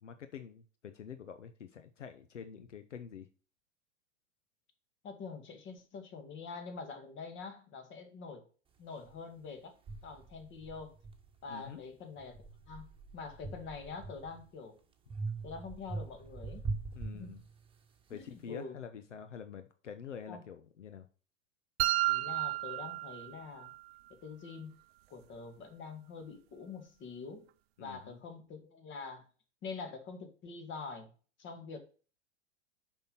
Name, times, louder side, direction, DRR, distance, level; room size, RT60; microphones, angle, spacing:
voice 1, 0.0-3.3 11.5-11.8 16.9-17.4 18.1-21.1 27.8-28.2, left 7 dB, 80° left, 9 dB, 0.9 m, -47 dB
voice 2, 5.0-8.4 8.8-9.7 10.0-10.9 11.4-12.9 13.1-14.8 15.4-16.6 17.1-17.3 18.1-18.8 20.3-20.4 22.1-23.7 24.1-24.8 25.1-27.5 27.8-29.2 29.6-31.1 31.4-31.8, left 4 dB, 35° left, 7 dB, 2.0 m, -45 dB
sound 1, 9.1-9.2 9.9-11.7 12.2-14.5 15.1-17.9, right 3 dB, 15° right, 1.4 m, -42 dB
sound 2, 21.8-23.8, right 18 dB, 55° right, 0.5 m, -32 dB
6.8 x 5.9 x 5.5 m, 0.38 s
figure-of-eight pair, 95°, 36 cm